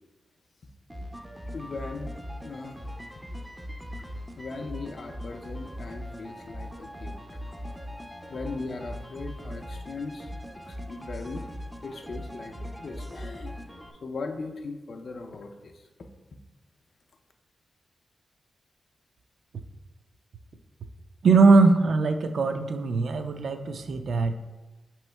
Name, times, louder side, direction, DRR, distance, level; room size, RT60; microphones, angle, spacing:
sound 1, 0.9-13.9, equal, ahead, 0.4 m, -40 dB
voice 1, 1.5-2.1 2.4-2.8 4.0-11.4 11.8-15.9, left 3 dB, 60° left, 4 dB, 0.4 m, -39 dB
voice 2, 21.2-24.3, right 3 dB, 70° right, 7 dB, 0.4 m, -21 dB
5.3 x 3.0 x 3.2 m, 1.1 s
cardioid pair, 70°, 0 cm